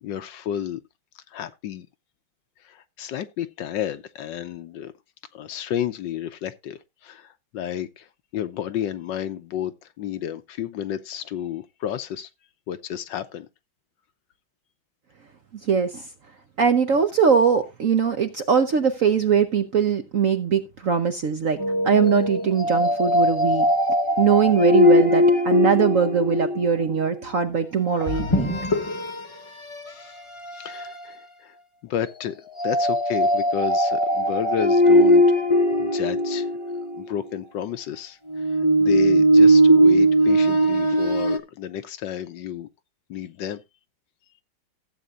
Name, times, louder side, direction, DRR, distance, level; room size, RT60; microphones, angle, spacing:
voice 1, 0.0-0.8 1.1-1.9 2.6-4.9 5.3-8.1 8.3-12.3 12.7-13.5 29.9-30.2 30.5-31.6 31.8-35.3 35.8-36.5 37.0-42.7 43.1-43.6, left 10 dB, 70° left, 1.3 m, -31 dB
voice 2, 15.7-16.0 16.6-21.6 21.8-23.7 24.2-28.6, right 6 dB, 55° right, 0.9 m, -21 dB
sound 1, 21.6-26.9 28.0-29.2 29.7-29.9 30.4-31.0 32.6-37.0 38.3-41.4, equal, 25° left, 0.7 m, -19 dB
15.5 x 8.0 x 2.5 m
omnidirectional pair, 2.2 m